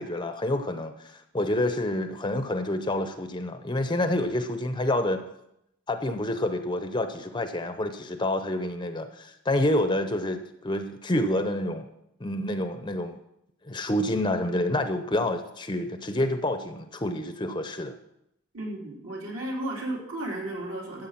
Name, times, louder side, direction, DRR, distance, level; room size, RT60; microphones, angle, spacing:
voice 1, 0.0-5.2 5.9-10.4 10.6-11.9 12.2-13.2 13.6-18.0, left 1 dB, 20° left, 8 dB, 0.7 m, -28 dB
voice 2, 18.5-21.1, right 1 dB, 60° right, -3 dB, 3.6 m, -34 dB
14.0 x 8.0 x 5.9 m, 0.81 s
head